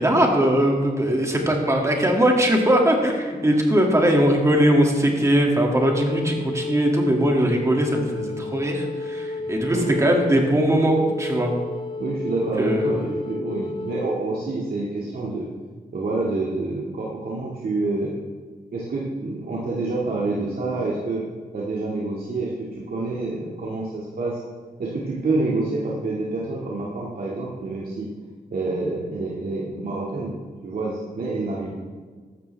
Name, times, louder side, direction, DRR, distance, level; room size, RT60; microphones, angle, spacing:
voice 1, 0.0-11.5 12.6-13.0, right 1 dB, 20° right, 0 dB, 2.3 m, -20 dB
Wind instrument woodwind instrument, 5.7-14.2, left 2 dB, 30° left, 0.6 m, -32 dB
voice 2, 9.7-10.0 12.0-15.5 15.9-18.1 18.7-21.2 21.5-24.4 24.8-28.1 28.5-30.3 30.6-31.7, right 2 dB, 65° right, -5 dB, 2.1 m, -27 dB
15.0 x 12.5 x 3.5 m, 1.5 s
wide cardioid pair, 130°, 16 cm